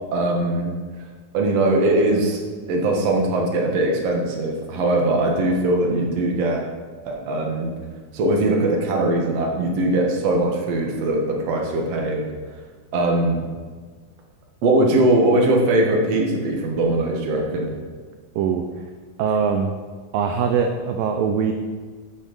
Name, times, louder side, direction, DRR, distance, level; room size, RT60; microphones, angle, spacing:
voice 1, 0.1-0.7 1.3-2.4 2.7-6.6 7.1-7.7 8.1-12.3 12.9-13.4 14.6-17.7, right 2 dB, 50° right, 0 dB, 2.3 m, -20 dB
voice 2, 19.2-19.7 20.1-21.5, right 6 dB, 80° right, 5 dB, 2.2 m, -22 dB
13.5 x 6.4 x 5.3 m, 1.5 s
omnidirectional pair, 4.4 m